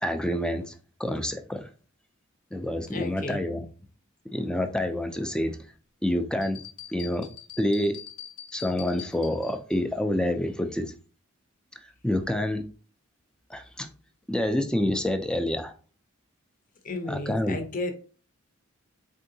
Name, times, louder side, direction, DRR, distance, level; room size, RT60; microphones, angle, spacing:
voice 1, 0.0-1.7 2.5-3.6 4.3-5.6 6.0-6.6 6.9-7.3 7.6-8.0 8.5-10.9 12.0-12.6 13.5-13.9 14.3-15.7 17.1-17.6, left 1 dB, 5° left, 0.3 m, -27 dB
voice 2, 2.9-3.6 16.8-17.9, left 2 dB, 40° left, 0.7 m, -33 dB
sound 1, 6.4-9.8, left 10 dB, 85° left, 0.8 m, -44 dB
4.4 x 3.7 x 2.7 m
head